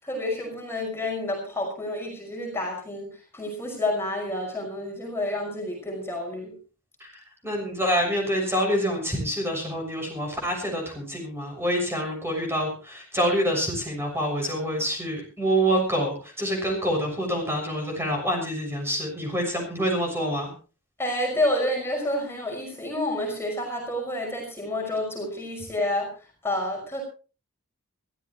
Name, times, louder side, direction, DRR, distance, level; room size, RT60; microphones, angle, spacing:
voice 1, 0.0-6.5 21.0-26.1 26.4-27.0, left 1 dB, 10° left, 0 dB, 5.8 m, -29 dB
voice 2, 7.4-20.5, equal, 10° right, 1 dB, 6.6 m, -26 dB
23.0 x 15.0 x 3.1 m, 0.36 s
head